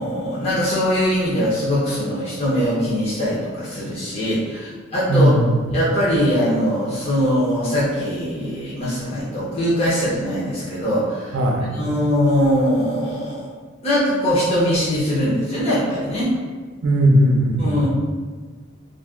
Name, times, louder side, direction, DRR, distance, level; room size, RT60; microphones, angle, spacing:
voice 1, 0.0-5.3 5.7-11.4 11.7-13.4 13.8-16.3 17.6-17.9, equal, 30° left, -9 dB, 0.7 m, -21 dB
voice 2, 5.1-5.6 11.3-11.7 16.8-17.8, equal, 75° right, 1 dB, 0.5 m, -17 dB
2.5 x 2.1 x 3.5 m, 1.4 s
head